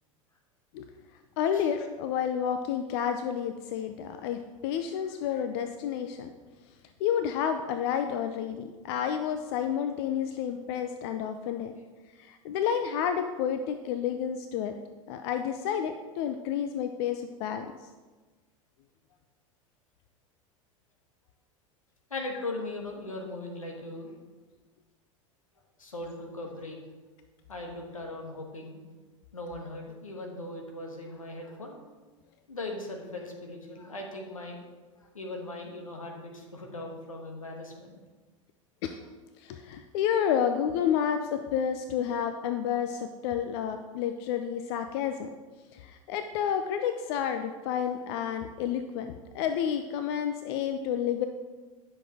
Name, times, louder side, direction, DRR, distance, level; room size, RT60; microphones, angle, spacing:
voice 1, 1.4-6.3 7.0-11.7 12.2-14.7 15.1-17.7 38.8-39.0 39.4-45.3 45.7-51.3, left 8 dB, 50° left, 8 dB, 0.5 m, -30 dB
voice 2, 22.1-24.1 25.8-26.8 27.5-28.8 29.3-31.8 32.5-34.6 35.1-38.0, left 2 dB, 85° left, 2 dB, 1.3 m, -39 dB
9.9 x 6.2 x 3.6 m, 1.3 s
figure-of-eight pair, 80°, 17 cm